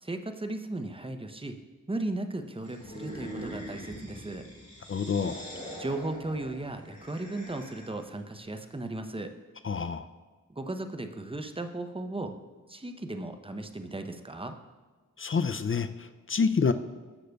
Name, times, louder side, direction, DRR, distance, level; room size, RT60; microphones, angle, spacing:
voice 1, 0.0-1.6 1.9-4.5 5.8-9.3 10.5-12.4 12.7-14.5, right 2 dB, 15° right, 7 dB, 0.6 m, -36 dB
sound 1, 2.6-8.1, equal, 20° left, 2.2 m, -43 dB
voice 2, 4.9-5.4 9.6-10.1 15.2-16.7, left 5 dB, 40° left, 11 dB, 0.4 m, -28 dB
13.0 x 6.5 x 2.3 m, 1.4 s
wide cardioid pair, 45°, 35 cm